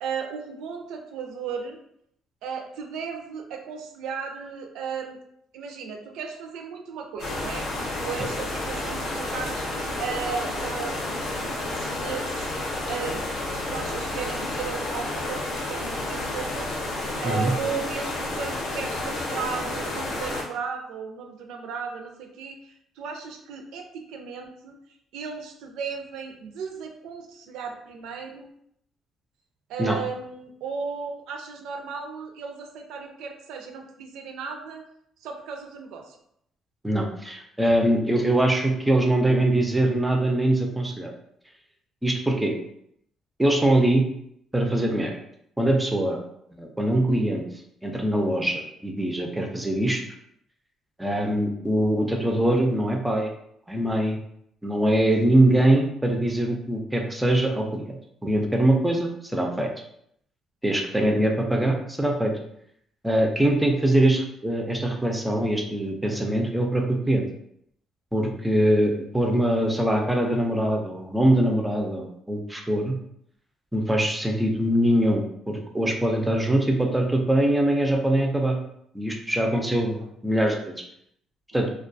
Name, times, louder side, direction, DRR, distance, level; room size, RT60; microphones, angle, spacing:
voice 1, 0.0-1.8 2.4-5.2 5.5-12.5 12.8-13.2 13.5-16.7 17.2-24.7 25.1-28.5 29.7-34.8 35.2-36.2 80.0-80.1, right 6 dB, 85° right, 3 dB, 0.4 m, -35 dB
sound 1, 7.2-20.4, left 2 dB, 65° left, 0.6 m, -30 dB
voice 2, 36.8-41.1 42.0-42.5 43.4-44.0 44.5-45.1 45.6-46.2 46.6-47.4 47.8-50.0 51.0-53.3 53.7-54.2 54.6-59.7 60.6-62.3 63.0-67.3 68.1-73.0 73.7-78.6 78.9-80.7 81.5-81.7, right 1 dB, 5° right, 2 dB, 0.4 m, -23 dB
2.2 x 2.2 x 2.5 m, 0.73 s
cardioid pair, 135°, 0 cm